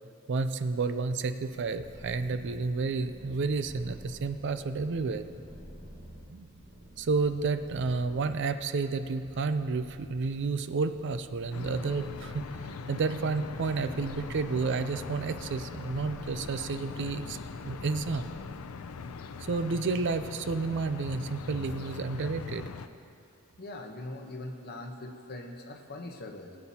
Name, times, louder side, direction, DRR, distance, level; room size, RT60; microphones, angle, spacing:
voice 1, 0.3-5.3 6.3-6.5 7.0-12.4 12.9-17.4 17.6-18.3 19.4-22.6, right 4 dB, 55° right, 10 dB, 0.4 m, -31 dB
Purr, 1.7-18.9, equal, 40° right, 2.2 m, -50 dB
sound 1, 11.5-22.9, left 5 dB, 90° left, 0.5 m, -41 dB
voice 2, 23.6-26.6, left 2 dB, 50° left, 3 dB, 1.0 m, -41 dB
20.0 x 8.7 x 2.8 m, 2.6 s
head